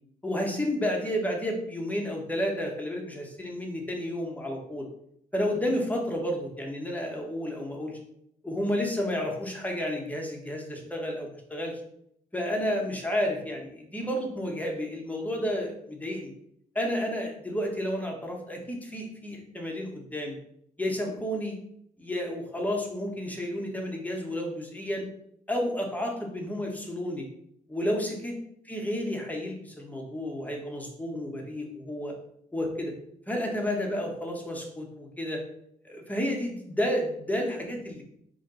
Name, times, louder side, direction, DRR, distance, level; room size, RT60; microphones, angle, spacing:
voice 1, 0.2-4.9 5.3-8.0 8.4-11.7 12.3-16.3 16.7-20.4 20.8-21.6 22.0-25.0 25.5-27.3 27.7-28.3 28.6-32.1 32.5-32.9 33.3-35.4 35.8-38.0, equal, 10° left, 0 dB, 2.0 m, -31 dB
5.0 x 3.9 x 5.7 m, 0.73 s
supercardioid pair, 65°, 16 cm